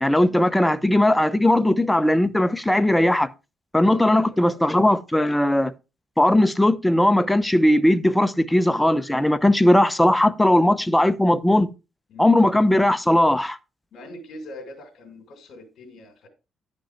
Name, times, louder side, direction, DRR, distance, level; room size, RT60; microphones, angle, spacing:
voice 1, 0.0-3.3 3.7-5.7 6.2-11.7 12.2-13.6, left 1 dB, 5° left, 0.8 m, -18 dB
voice 2, 3.9-4.6 12.1-12.3 13.9-16.3, left 1 dB, 65° left, 2.4 m, -43 dB
10.5 x 5.3 x 4.4 m
cardioid pair, 90°, 0 cm